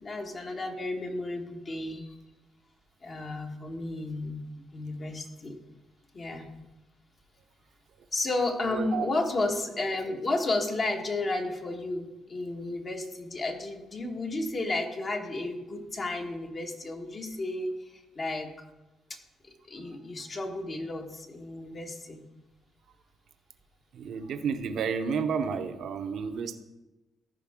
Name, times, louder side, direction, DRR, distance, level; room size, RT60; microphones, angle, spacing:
voice 1, 0.0-2.2 3.0-4.4 4.7-5.6 6.1-6.5 8.1-18.5 19.1-19.2 19.4-22.2, left 2 dB, 40° left, 3 dB, 1.4 m, -32 dB
voice 2, 8.6-9.1 23.9-26.5, right 6 dB, 70° right, 7 dB, 0.7 m, -31 dB
14.0 x 5.3 x 3.7 m, 1.1 s
cardioid pair, 90°, 0 cm